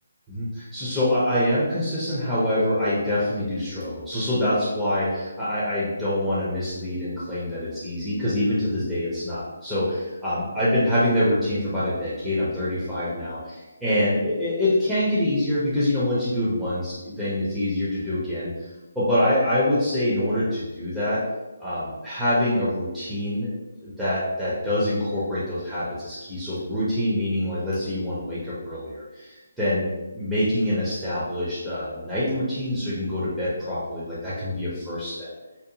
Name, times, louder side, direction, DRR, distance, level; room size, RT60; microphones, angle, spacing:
voice 1, 0.3-18.7 19.0-21.2 21.6-23.5 23.8-35.3, left 1 dB, ahead, -12 dB, 0.5 m, -25 dB
2.7 x 2.1 x 2.6 m, 1.1 s
hypercardioid pair, 165°, 0 cm